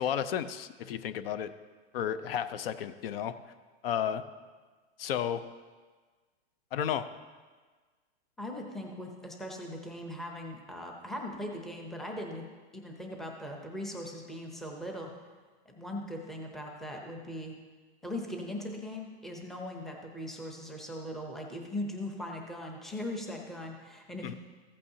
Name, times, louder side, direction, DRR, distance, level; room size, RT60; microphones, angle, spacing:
voice 1, 0.0-1.5 1.9-3.4 3.8-4.2 5.0-5.4 6.7-7.1 24.2-24.3, left 9 dB, 60° left, 12 dB, 0.6 m, -32 dB
voice 2, 8.4-12.5 12.7-15.1 15.7-17.5 18.0-24.4, left 1 dB, ahead, 1 dB, 0.6 m, -39 dB
14.5 x 8.5 x 2.7 m, 1.4 s
supercardioid pair, 155°, 32 cm